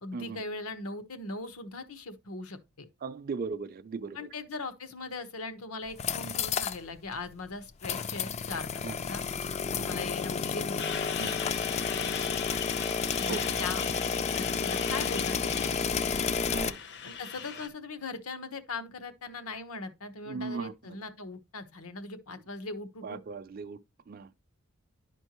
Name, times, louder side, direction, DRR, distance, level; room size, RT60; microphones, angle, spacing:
voice 1, 0.0-2.9 4.1-9.2 9.8-10.9 13.2-13.8 14.3-15.8 17.0-23.2, left 3 dB, 85° left, 1.0 m, -40 dB
voice 2, 3.0-4.3 8.8-9.0 9.6-10.0 11.2-11.4 13.3-13.4 16.5-16.8 20.3-20.7 23.0-23.8 24.1-24.3, right 4 dB, 40° right, 0.4 m, -38 dB
sound 1, 5.9-6.8 7.1-7.2 7.8-16.7, left 6 dB, 30° left, 0.3 m, -31 dB
Truck, 10.8-17.7, left 7 dB, 55° left, 0.7 m, -39 dB
11.5 x 4.4 x 2.9 m
head